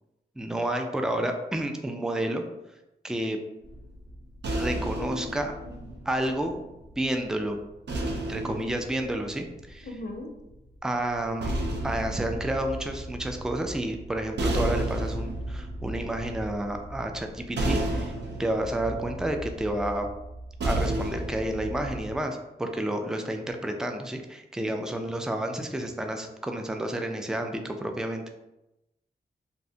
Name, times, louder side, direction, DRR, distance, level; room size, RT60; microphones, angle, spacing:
voice 1, 0.4-2.4 3.0-3.4 4.5-5.5 6.1-6.7 7.0-7.6 8.3-9.9 10.8-18.1 18.4-20.1 20.6-28.2, right 1 dB, 5° right, 4 dB, 0.3 m, -30 dB
sound 1, 3.6-6.9 7.9-10.1 11.1-22.2, right 1 dB, 75° right, 0.5 m, -33 dB
voice 2, 5.0-5.8 9.8-10.3 24.6-25.2, left 1 dB, 55° left, 3 dB, 0.5 m, -41 dB
2.5 x 2.1 x 2.7 m, 0.95 s
cardioid pair, 50°, 18 cm